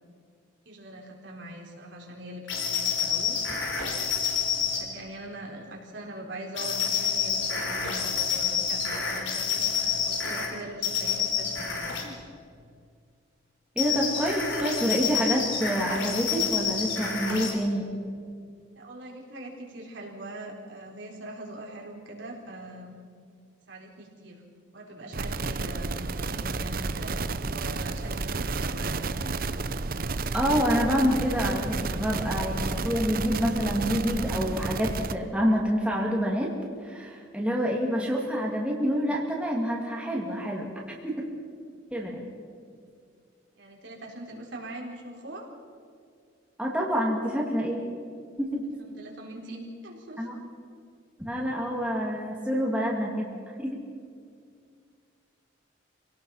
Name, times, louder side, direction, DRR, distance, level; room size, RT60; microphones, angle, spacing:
voice 1, 0.7-3.4 4.5-12.3 18.7-23.0 23.7-24.4 24.7-29.6 43.6-45.5 48.6-50.3, right 1 dB, 70° right, -1 dB, 4.2 m, -42 dB
sound 1, 2.5-4.8 6.5-10.5 10.8-12.1 13.8-17.5, left 6 dB, 75° left, 4.0 m, -28 dB
voice 2, 13.8-17.8 30.3-36.5 36.8-40.7 41.0-41.2 41.9-42.2 46.6-47.8 48.4-48.6 50.2-50.3 51.2-53.3 53.6-53.8, equal, 5° right, -2 dB, 2.5 m, -27 dB
sound 2, 25.1-35.1, right 3 dB, 50° right, 0.7 m, -31 dB
26.5 x 18.0 x 5.8 m, 2.2 s
head